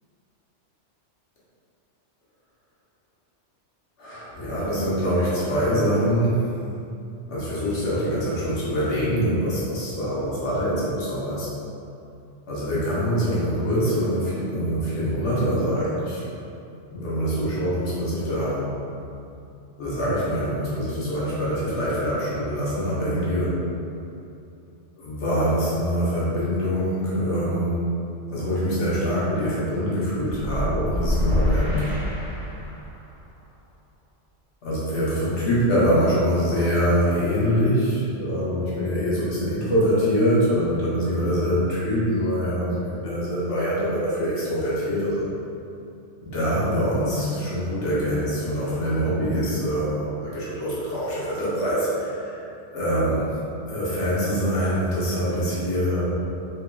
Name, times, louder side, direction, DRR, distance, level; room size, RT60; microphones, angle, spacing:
voice 1, 4.0-6.5 7.3-11.5 12.5-16.2 16.9-18.7 19.8-23.6 24.9-28.0 28.3-32.1 34.6-45.3 46.2-53.2 53.7-56.3, equal, 75° left, -9 dB, 1.3 m, -24 dB
sound 1, 30.4-32.9, left 1 dB, 20° right, 0.8 m, -26 dB
3.5 x 3.4 x 2.2 m, 2.6 s
omnidirectional pair, 1.2 m